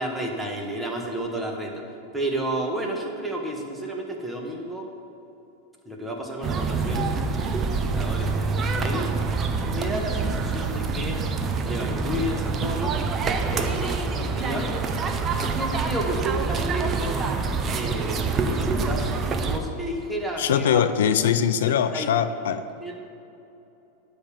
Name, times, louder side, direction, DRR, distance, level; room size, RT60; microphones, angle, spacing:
voice 1, 0.0-1.7 2.1-4.9 5.8-11.2 11.6-12.9 13.5-14.7 15.4-17.3 17.7-19.2 19.4-20.8 21.9-22.1 22.8-23.1, right 1 dB, 5° right, 0 dB, 1.4 m, -31 dB
sound 1, 6.4-19.6, right 4 dB, 25° right, 0.6 m, -26 dB
voice 2, 20.4-22.6, left 8 dB, 80° left, 11 dB, 0.4 m, -22 dB
10.0 x 3.5 x 7.2 m, 2.9 s
supercardioid pair, 130°, 0 cm